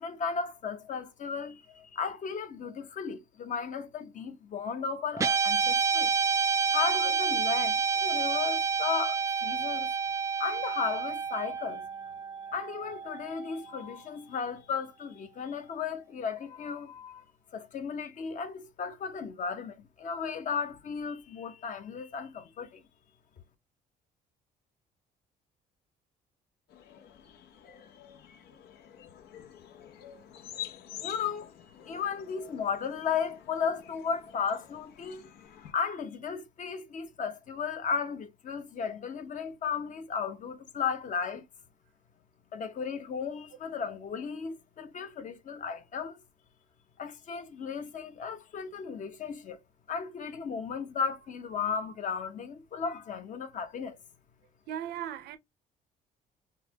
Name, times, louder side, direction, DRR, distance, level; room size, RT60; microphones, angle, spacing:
voice 1, 0.0-6.1 6.7-9.9 10.4-11.8 12.5-17.2 17.5-22.8 31.0-31.5 31.8-41.4 42.5-46.2 47.0-49.6 49.9-54.0, left 6 dB, 50° left, 1.0 m, -35 dB
Guitar, 5.2-13.6, right 6 dB, 20° right, 0.4 m, -29 dB
sound 1, 26.7-35.7, left 11 dB, 75° left, 0.8 m, -48 dB
voice 2, 54.7-55.4, right 10 dB, 75° right, 0.7 m, -37 dB
5.7 x 2.2 x 2.8 m
cardioid pair, 110°, 17 cm